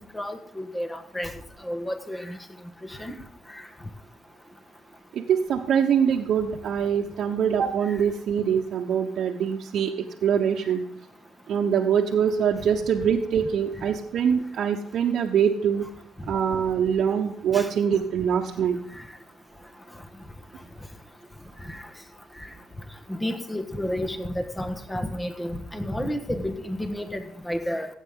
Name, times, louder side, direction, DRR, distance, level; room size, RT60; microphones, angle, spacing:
voice 1, 0.1-1.3 1.7-2.4 3.0-3.1 17.5-17.7 23.2-27.9, left 1 dB, 15° left, 6 dB, 1.4 m, -31 dB
voice 2, 5.1-9.9 10.2-10.8 11.5-15.8 16.3-18.8, right 7 dB, 70° right, -1 dB, 1.0 m, -24 dB
15.5 x 8.3 x 3.8 m, 0.63 s
cardioid pair, 90°, 0 cm